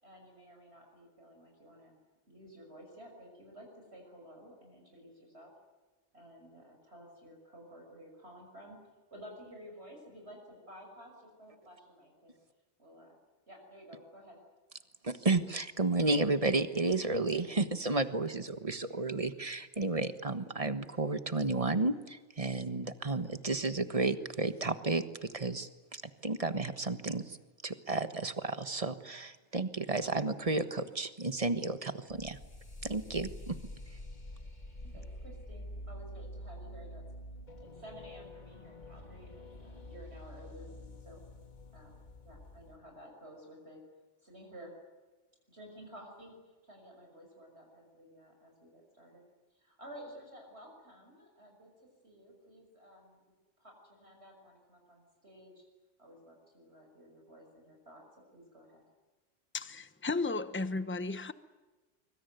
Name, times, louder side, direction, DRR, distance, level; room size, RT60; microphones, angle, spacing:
voice 1, 0.0-2.0 2.3-5.5 6.1-8.8 9.1-12.4 12.8-13.2 13.5-14.4 34.8-37.0 37.6-41.2 41.7-43.8 44.2-44.7 45.5-49.2 49.5-51.7 52.0-53.2 53.6-55.6 56.0-58.0 58.3-58.8, equal, 60° right, 6.5 m, -53 dB
voice 2, 15.0-25.0 25.3-27.4 27.6-32.4 32.8-33.6, right 3 dB, 30° right, 1.4 m, -32 dB
sound 1, 32.1-42.8, left 1 dB, 40° left, 2.5 m, -47 dB
voice 3, 59.5-61.3, left 3 dB, 10° left, 1.0 m, -34 dB
24.5 x 24.5 x 9.3 m
omnidirectional pair, 1.2 m